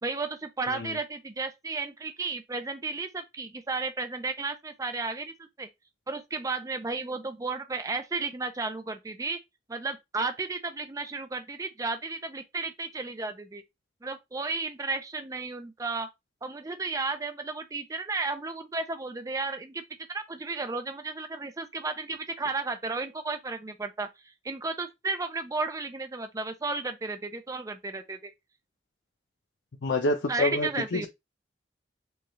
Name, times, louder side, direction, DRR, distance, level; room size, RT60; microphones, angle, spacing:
voice 1, 0.0-5.7 6.1-9.4 9.7-13.6 14.0-16.1 16.4-19.8 20.1-24.1 24.4-28.3 30.3-31.1, right 3 dB, 20° right, 0.4 m, -33 dB
voice 2, 0.7-1.0 29.8-31.1, left 2 dB, 90° left, 0.6 m, -28 dB
4.6 x 2.4 x 3.1 m
head